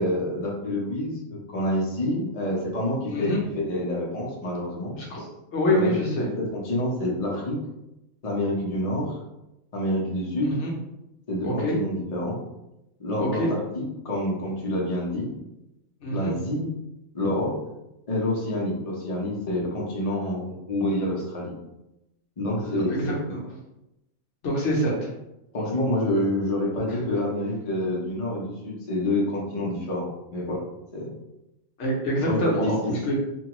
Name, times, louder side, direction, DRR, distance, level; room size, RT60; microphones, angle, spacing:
voice 1, 0.0-5.3 5.7-7.6 8.2-9.2 9.7-10.5 11.3-12.4 13.0-15.3 16.1-16.7 17.1-17.6 18.1-21.5 22.4-23.1 25.5-30.6 30.9-31.1 32.2-32.9, left 1 dB, 40° left, -4 dB, 0.5 m, -27 dB
voice 2, 3.1-3.4 5.0-5.2 5.5-6.3 10.4-10.7 11.4-11.8 13.2-13.5 16.0-16.3 22.6-23.4 24.4-25.1 26.9-27.0 31.8-33.1, equal, 60° left, -3 dB, 0.9 m, -26 dB
3.2 x 2.3 x 2.9 m, 0.91 s
omnidirectional pair, 1.5 m